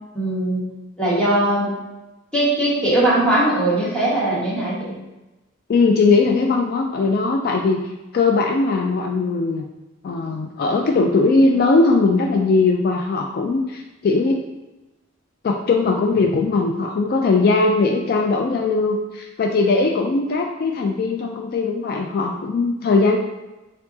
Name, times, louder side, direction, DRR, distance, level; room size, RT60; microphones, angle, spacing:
voice 1, 0.1-0.7 1.0-1.7 2.3-4.9, right 1 dB, 5° left, -8 dB, 1.5 m, -20 dB
voice 2, 5.7-7.8 8.1-9.6 10.0-14.4 15.4-23.2, left 3 dB, 50° left, 3 dB, 0.3 m, -19 dB
4.5 x 3.6 x 2.7 m, 1.1 s
head